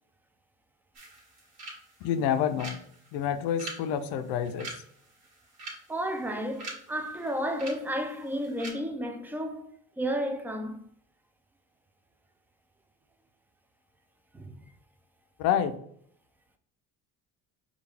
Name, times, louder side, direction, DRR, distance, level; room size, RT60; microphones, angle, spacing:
sound 1, 0.9-8.7, right 2 dB, 50° right, 1.7 m, -46 dB
voice 1, 2.0-2.8 3.1-4.7 15.4-15.7, left 9 dB, 80° left, 0.6 m, -28 dB
voice 2, 5.9-10.9 14.3-14.5, equal, 5° right, 0.4 m, -32 dB
4.9 x 2.4 x 3.3 m
cardioid pair, 100°, 37 cm